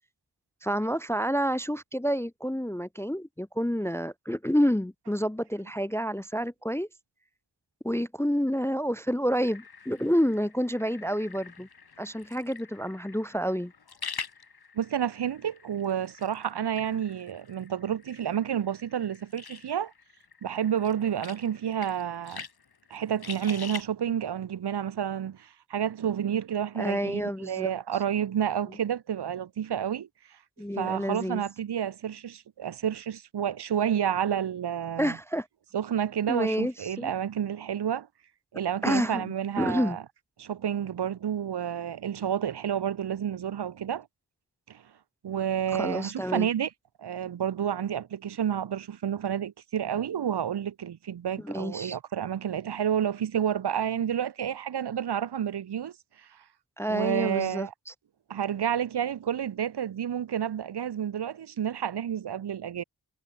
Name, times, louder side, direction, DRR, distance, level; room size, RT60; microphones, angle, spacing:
voice 1, 0.6-6.9 7.8-11.7 12.0-13.7 26.8-27.7 30.6-31.4 35.0-35.5 36.3-37.1 38.8-40.0 45.7-46.5 51.4-52.0 56.8-57.7, equal, 5° left, 0.4 m, -29 dB
sound 1, 9.4-23.8, left 5 dB, 65° left, 2.9 m, -45 dB
voice 2, 14.7-19.9 20.4-22.4 22.9-30.1 30.8-35.2 35.7-38.1 38.5-40.0 40.4-44.1 44.7-44.8 45.2-46.7 47.0-55.9 56.2-56.3 56.9-57.7 58.3-62.8, right 9 dB, 75° right, 0.8 m, -30 dB
wide cardioid pair, 90°, 40 cm